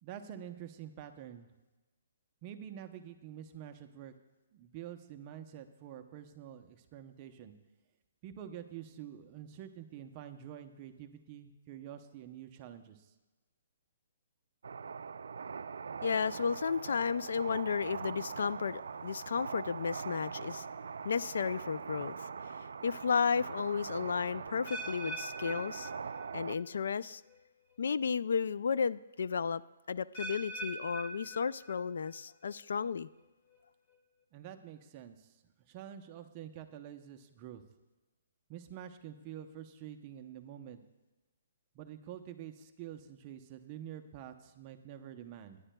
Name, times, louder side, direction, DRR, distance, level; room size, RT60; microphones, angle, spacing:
voice 1, 0.0-1.5 2.4-4.1 4.5-7.5 8.2-13.1 34.3-37.6 38.5-40.8 41.7-45.6, right 10 dB, 25° right, 6 dB, 0.6 m, -47 dB
sound 1, 14.6-26.6, right 5 dB, 85° right, 0.3 m, -42 dB
voice 2, 16.0-20.7 21.0-25.9 26.3-27.2 27.8-29.6 29.9-33.1, left 6 dB, 70° left, 17 dB, 0.3 m, -33 dB
sound 2, 24.7-26.7 26.9-27.4 28.0-28.1 30.1-32.1 32.4-32.9 33.5-33.6, right 2 dB, 35° left, 1.5 m, -44 dB
20.0 x 10.0 x 2.2 m, 1.1 s
hypercardioid pair, 170°, 0 cm